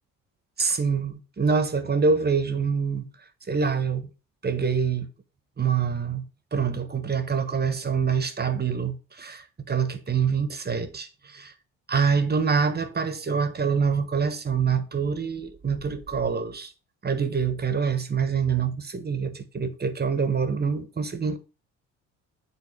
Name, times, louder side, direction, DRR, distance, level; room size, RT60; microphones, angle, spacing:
voice 1, 0.6-3.1 3.5-4.1 4.4-5.1 5.6-6.2 6.5-11.5 11.9-16.7 17.0-21.4, right 5 dB, 25° right, 1.2 m, -25 dB
9.8 x 4.1 x 3.2 m
hypercardioid pair, 55°, 38 cm